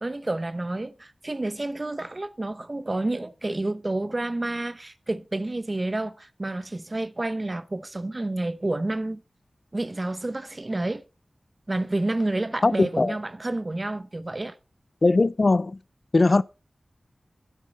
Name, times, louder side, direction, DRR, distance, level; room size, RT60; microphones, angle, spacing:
voice 1, 0.0-9.2 9.7-11.0 11.7-14.5, right 2 dB, 40° right, 0.8 m, -29 dB
voice 2, 12.6-13.2 15.0-15.8 16.1-16.4, left 3 dB, 55° left, 0.4 m, -20 dB
9.3 x 7.5 x 4.2 m
cardioid pair, 50°, 0 cm